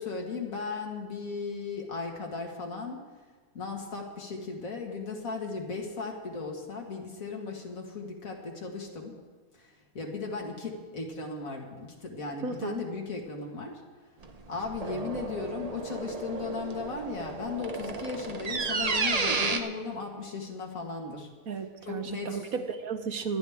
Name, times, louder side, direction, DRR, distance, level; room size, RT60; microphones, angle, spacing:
voice 1, 0.0-3.0 3.5-9.2 9.5-13.8 14.5-21.3 21.9-22.4, left 4 dB, 60° left, 1 dB, 2.2 m, -36 dB
voice 2, 12.4-12.8 21.5-23.4, right 5 dB, 65° right, 6 dB, 1.5 m, -34 dB
sound 1, 14.2-19.6, right 4 dB, 35° right, 0.6 m, -32 dB
25.0 x 10.5 x 3.6 m, 1.4 s
omnidirectional pair, 1.6 m